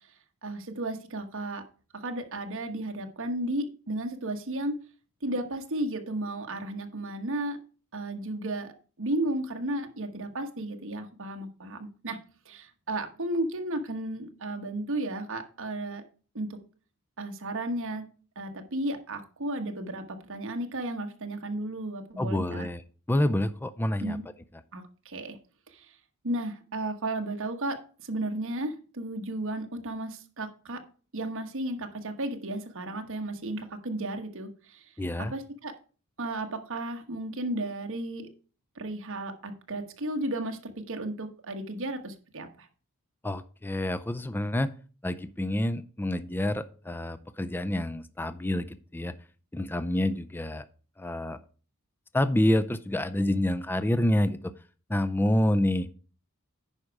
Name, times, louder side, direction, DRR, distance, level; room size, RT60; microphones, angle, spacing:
voice 1, 0.4-1.6 1.9-4.7 5.2-7.6 7.9-8.7 9.0-12.2 12.5-16.0 16.3-16.6 17.2-18.0 18.4-22.7 24.0-24.2 24.7-25.4 25.7-25.9 26.2-30.8 31.1-34.8 35.3-35.7 36.2-38.3 38.8-42.7, right 1 dB, 65° right, 5 dB, 1.2 m, -34 dB
voice 2, 22.2-22.8 23.1-24.2 35.0-35.3 43.2-44.7 45.0-49.1 49.5-50.6 51.0-51.4 52.1-54.5 54.9-55.9, left 1 dB, 10° left, 13 dB, 0.4 m, -27 dB
9.7 x 5.1 x 4.7 m, 0.38 s
head